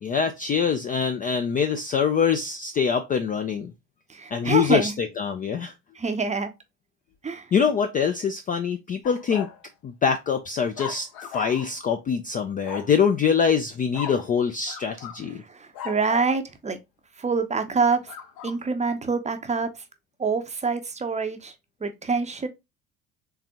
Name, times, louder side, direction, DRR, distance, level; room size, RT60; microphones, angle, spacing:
voice 1, 0.0-3.7 4.3-5.7 7.5-9.5 9.8-11.1 11.3-15.4, left 6 dB, 20° left, 0.3 m, -24 dB
voice 2, 4.1-5.0 6.0-6.5 7.2-7.5 15.3-16.8 17.2-18.1 18.4-19.8 20.2-21.5 21.8-22.5, right 4 dB, 15° right, 0.6 m, -26 dB
sound 1, 9.0-9.6 10.7-11.8 12.6-13.0 13.9-14.3 14.7-15.2 15.7-16.4 18.1-18.6, left 8 dB, 55° left, 0.8 m, -37 dB
3.7 x 3.3 x 2.8 m
figure-of-eight pair, 55°, 42 cm